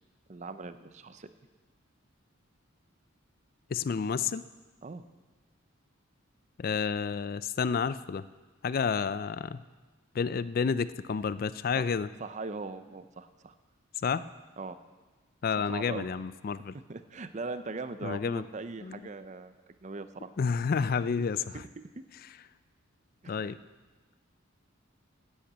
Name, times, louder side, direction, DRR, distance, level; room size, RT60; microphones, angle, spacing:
voice 1, 0.3-1.3 4.8-5.0 11.8-11.9 12.2-13.5 14.6-14.8 15.7-16.1 16.9-19.5 19.8-20.3 21.4-21.5 21.9-22.0 23.2-23.6, right 3 dB, 35° right, 11 dB, 0.5 m, -40 dB
voice 2, 3.7-4.4 6.6-8.2 8.6-9.6 10.1-12.1 14.0-14.3 15.4-16.7 18.0-18.5 18.8-19.0 20.4-21.6 23.3-23.6, left 6 dB, 45° left, 15 dB, 0.3 m, -30 dB
10.0 x 8.8 x 8.0 m, 1.3 s
head